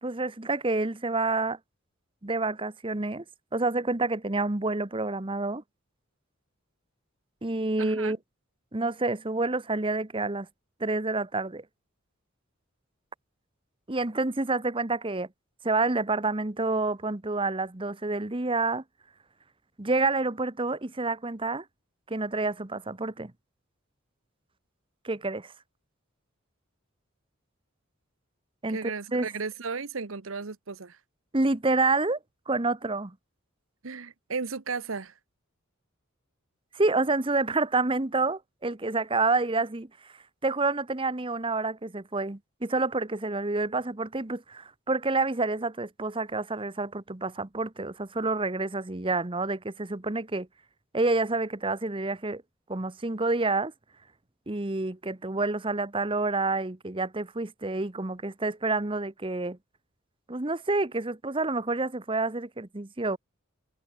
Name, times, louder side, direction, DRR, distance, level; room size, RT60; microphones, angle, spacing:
voice 1, 0.0-1.6 2.2-3.2 3.5-5.6 7.4-8.2 8.7-10.5 10.8-11.6 13.9-15.3 15.6-18.8 19.8-21.6 22.1-23.3 25.0-25.5 28.6-29.3 31.3-32.2 32.5-33.1 36.7-39.9 40.4-50.5 50.9-52.4 52.7-53.7 54.5-59.6 60.3-63.2, right 3 dB, 25° right, 1.0 m, -28 dB
voice 2, 7.8-8.2 28.7-31.0 33.8-35.2, right 4 dB, 75° right, 1.1 m, -35 dB
head